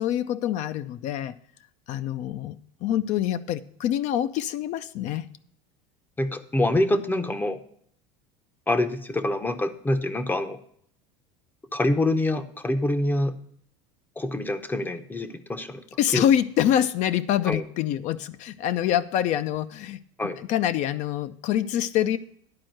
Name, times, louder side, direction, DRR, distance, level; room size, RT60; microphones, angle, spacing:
voice 1, 0.0-1.4 1.9-5.3 16.0-20.0 20.4-22.2, left 11 dB, 50° left, 12 dB, 0.5 m, -25 dB
voice 2, 6.2-7.6 8.7-10.6 11.7-13.4 14.2-15.8 16.1-16.3 17.5-17.6 20.2-20.4, left 1 dB, 10° left, 9 dB, 0.6 m, -25 dB
10.5 x 4.4 x 7.6 m, 0.64 s
supercardioid pair, 120°, 15 cm